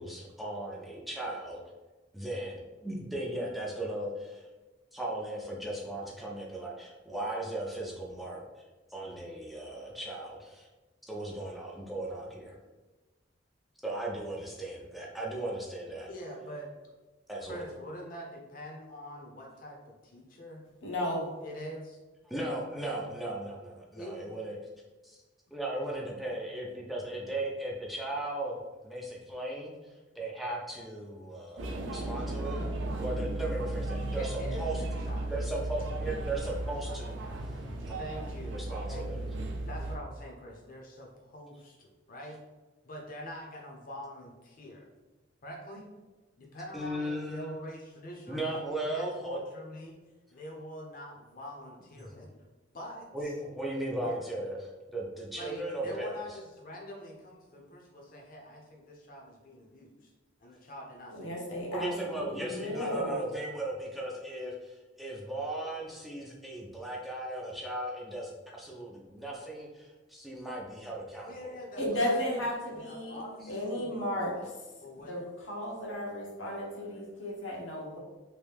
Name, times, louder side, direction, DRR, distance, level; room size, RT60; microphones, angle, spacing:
voice 1, 0.0-1.6 2.1-4.5 4.9-8.4 8.9-10.7 11.1-12.6 13.8-16.1 17.3-17.6 22.3-24.6 25.0-25.2 25.5-28.6 28.8-32.6 33.0-34.8 35.3-37.5 38.5-39.2 46.7-47.5 48.3-49.4 53.1-56.2 61.7-71.6, right 1 dB, ahead, -3 dB, 0.4 m, -37 dB
voice 2, 16.1-16.7 17.4-20.6 21.4-22.0 24.0-24.3 34.1-35.3 38.0-39.3 39.6-42.4 42.8-44.8 45.4-45.9 46.4-48.6 48.9-50.0 50.3-52.4 52.7-53.3 54.0-54.2 55.3-60.1 60.4-61.4 71.3-72.2 72.7-74.5 74.8-75.1, equal, 45° left, 0 dB, 0.7 m, -45 dB
voice 3, 20.8-21.3 61.1-63.3 71.8-73.2 73.5-74.5 75.0-78.0, left 1 dB, 85° left, -3 dB, 1.0 m, -34 dB
sound 1, 31.6-40.0, right 2 dB, 75° right, 0.5 m, -35 dB
3.1 x 2.6 x 3.3 m, 1.2 s
head